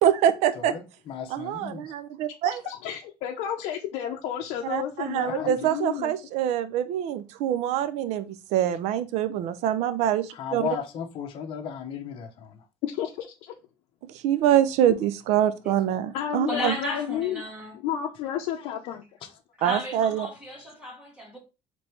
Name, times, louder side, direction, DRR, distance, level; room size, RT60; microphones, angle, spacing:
voice 1, 0.0-0.7 1.3-2.6 4.7-10.6 14.2-16.8 19.6-20.3, right 10 dB, 80° right, 0.5 m, -25 dB
voice 2, 0.5-1.9 5.2-5.7 10.3-12.6 18.6-18.7 19.2-19.3, left 8 dB, 50° left, 0.9 m, -36 dB
voice 3, 2.4-6.1 12.8-13.5 16.1-17.4 17.7-19.0, left 10 dB, 85° left, 0.6 m, -31 dB
voice 4, 16.5-17.8 19.6-21.4, left 1 dB, 10° right, 1.4 m, -34 dB
5.1 x 3.4 x 3.1 m
cardioid pair, 155°, 11 cm